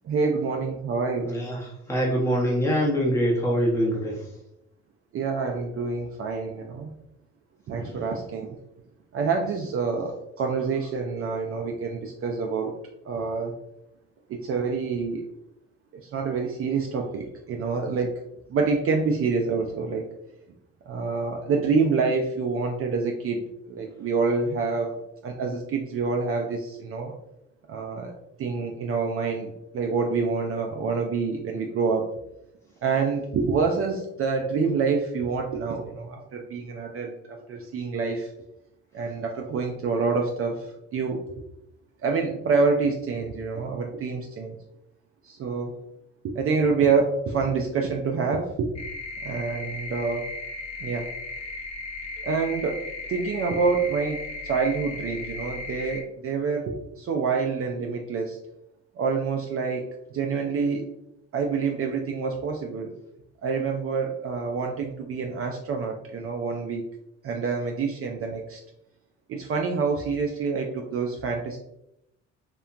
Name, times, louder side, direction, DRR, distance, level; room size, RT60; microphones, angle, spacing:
voice 1, 0.0-1.3 5.1-6.9 7.7-8.6 9.1-12.8 13.0-13.5 14.3-15.3 16.0-18.1 18.5-20.1 20.9-27.1 27.7-28.1 28.4-32.1 32.8-38.3 38.9-41.4 42.0-44.6 45.2-45.8 46.2-48.7 49.2-50.3 50.8-51.1 52.2-52.8 53.1-58.4 59.0-60.9 61.3-62.9 63.4-66.8 67.2-68.6 69.3-71.6, right 4 dB, 45° right, 2 dB, 0.4 m, -27 dB
voice 2, 1.2-4.3, equal, 10° left, -4 dB, 0.8 m, -24 dB
sound 1, 48.8-56.0, left 2 dB, 55° left, 0.7 m, -36 dB
2.8 x 2.2 x 2.4 m, 0.81 s
supercardioid pair, 60°, 31 cm